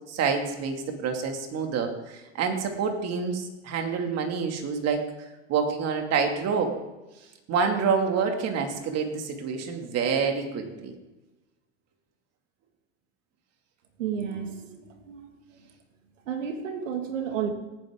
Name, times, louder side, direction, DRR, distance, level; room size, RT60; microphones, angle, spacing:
voice 1, 0.1-5.1 5.5-6.7 7.5-10.9, right 5 dB, 45° right, 4 dB, 2.5 m, -27 dB
voice 2, 14.0-15.3 16.3-17.5, right 7 dB, 85° right, 5 dB, 2.2 m, -32 dB
18.0 x 9.9 x 3.7 m, 1.1 s
hypercardioid pair, 110°, 37 cm